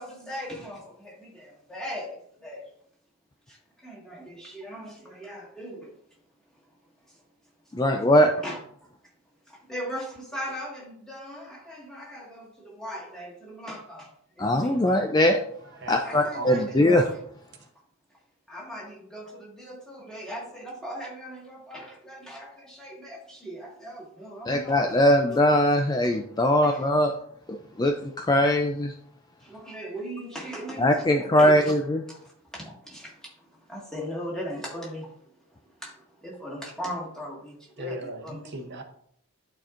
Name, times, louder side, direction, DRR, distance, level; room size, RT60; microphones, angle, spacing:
voice 1, 0.0-2.7 3.5-5.9 7.1-7.2 8.4-8.6 9.5-15.0 16.0-17.2 18.5-25.4 26.6-26.9 29.4-31.8 32.1-38.0 38.2-38.6, equal, 5° left, -4 dB, 1.7 m, -39 dB
voice 2, 7.7-8.3 14.4-15.4 15.9-17.0 24.5-27.1 27.5-28.9 30.8-32.0, left 1 dB, 20° left, 4 dB, 0.3 m, -21 dB
voice 3, 15.7-16.7 37.8-38.8, right 1 dB, 50° right, 4 dB, 0.8 m, -37 dB
12.0 x 4.2 x 2.5 m, 0.67 s
head